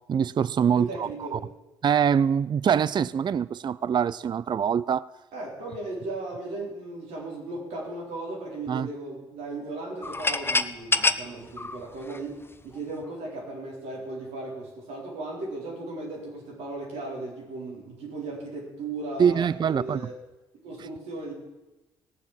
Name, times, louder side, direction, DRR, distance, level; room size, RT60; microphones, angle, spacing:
voice 1, 0.1-1.4 1.8-5.1 8.7-8.9 19.2-20.0, right 7 dB, 40° right, 19 dB, 0.4 m, -24 dB
voice 2, 0.7-1.4 5.3-20.2 20.6-21.3, right 2 dB, 70° right, -2 dB, 4.0 m, -36 dB
sound 1, 10.0-12.8, left 3 dB, 20° left, 0.8 m, -27 dB
18.0 x 7.2 x 7.4 m, 1.1 s
hypercardioid pair, 45°, 12 cm